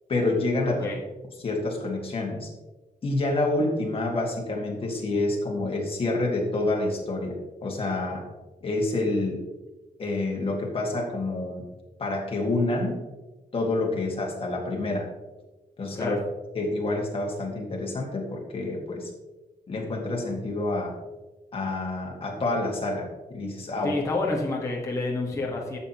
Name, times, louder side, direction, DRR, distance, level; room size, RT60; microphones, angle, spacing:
voice 1, 0.1-0.9 1.4-2.5 3.0-8.2 8.6-9.4 10.0-11.6 12.0-13.0 13.5-15.1 15.8-16.2 16.5-19.1 19.7-20.9 21.5-24.0, left 2 dB, 35° left, -1 dB, 2.0 m, -28 dB
voice 2, 23.8-25.8, left 2 dB, 20° left, -4 dB, 1.5 m, -28 dB
12.0 x 7.3 x 3.0 m, 1.1 s
wide cardioid pair, 170°, 15 cm